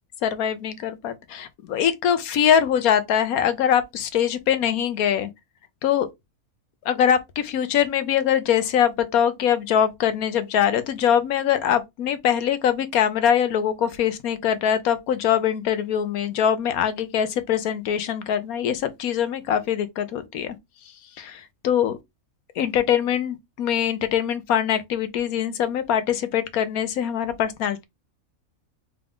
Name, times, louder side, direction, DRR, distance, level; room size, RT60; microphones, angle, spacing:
voice 1, 0.2-5.3 5.8-6.1 6.8-20.6 20.8-22.0 22.6-27.8, left 9 dB, 85° left, 1.2 m, -23 dB
3.6 x 3.6 x 3.5 m
omnidirectional pair, 1.5 m